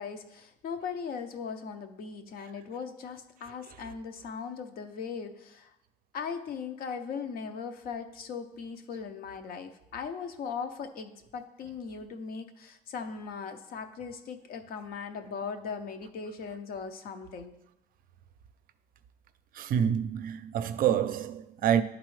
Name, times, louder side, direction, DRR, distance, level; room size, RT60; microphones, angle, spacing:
voice 1, 0.0-5.7 6.1-17.5, left 6 dB, 65° left, 0.7 m, -39 dB
voice 2, 19.5-21.8, right 9 dB, 55° right, 0.5 m, -27 dB
11.0 x 4.0 x 3.2 m
cardioid pair, 110°, 17 cm